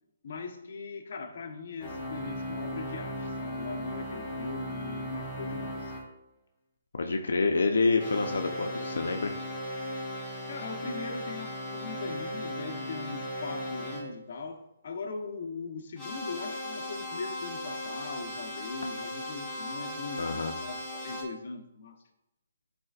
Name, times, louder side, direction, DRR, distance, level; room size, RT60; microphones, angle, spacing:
voice 1, 0.2-5.9 10.5-22.0, left 4 dB, 50° left, 3 dB, 1.0 m, -40 dB
sound 1, 1.8-6.0 8.0-14.0 16.0-21.2, left 1 dB, ahead, 1.6 m, -37 dB
voice 2, 6.9-9.3 20.2-20.5, left 3 dB, 85° left, 4 dB, 0.7 m, -27 dB
10.5 x 4.3 x 2.5 m, 0.90 s
hypercardioid pair, 165°, 0 cm